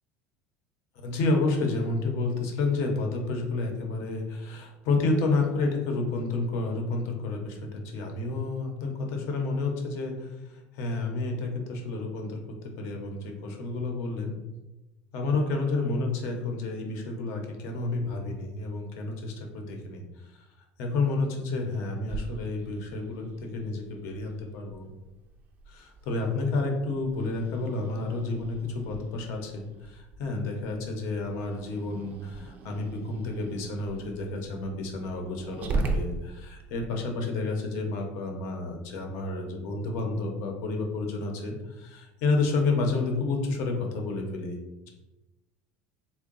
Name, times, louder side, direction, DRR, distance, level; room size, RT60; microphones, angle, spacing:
voice 1, 1.0-12.4 12.8-14.4 15.1-20.0 20.3-20.4 20.8-24.9 25.7-44.6 44.8-44.9, left 3 dB, 65° left, 2 dB, 0.8 m, -30 dB
Growling, 22.1-36.9, right 3 dB, 35° right, 0.4 m, -39 dB
3.6 x 2.2 x 3.8 m, 1.0 s
cardioid pair, 150°, 5 cm